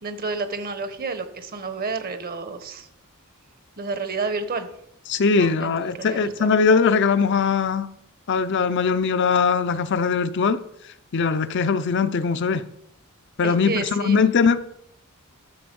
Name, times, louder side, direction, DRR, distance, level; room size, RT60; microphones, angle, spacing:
voice 1, 0.0-2.9 3.8-4.7 5.3-6.5 13.4-14.2, right 4 dB, 45° right, 1.1 m, -30 dB
voice 2, 5.1-7.9 8.3-10.6 11.1-12.6 13.4-14.6, left 5 dB, 55° left, 0.5 m, -21 dB
11.0 x 7.0 x 5.3 m
head